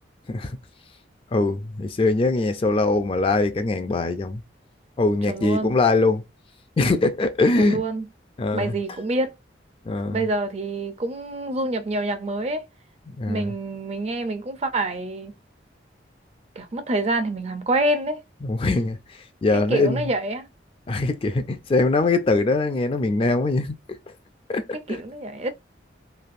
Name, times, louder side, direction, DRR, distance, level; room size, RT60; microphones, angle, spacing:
voice 1, 1.3-4.4 5.0-6.2 6.8-7.8 8.4-8.7 9.8-10.2 13.1-13.5 18.4-20.1 20.9-23.8 24.5-25.0, left 3 dB, 30° left, 0.3 m, -22 dB
voice 2, 5.3-5.7 7.6-8.1 8.5-9.3 10.1-12.7 13.3-15.3 16.6-18.2 19.7-20.5 24.9-25.5, right 2 dB, 35° right, 0.4 m, -26 dB
3.2 x 2.5 x 2.4 m
head